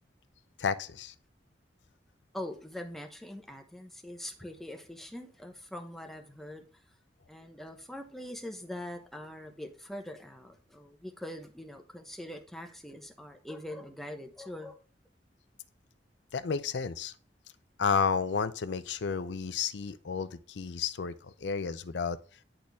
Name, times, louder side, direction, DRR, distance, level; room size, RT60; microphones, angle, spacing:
voice 1, 0.6-1.1 16.3-17.1 17.8-22.2, left 6 dB, 80° left, 0.5 m, -31 dB
voice 2, 2.3-6.6 7.3-14.8, left 1 dB, ahead, 1.0 m, -43 dB
9.9 x 4.4 x 3.4 m
head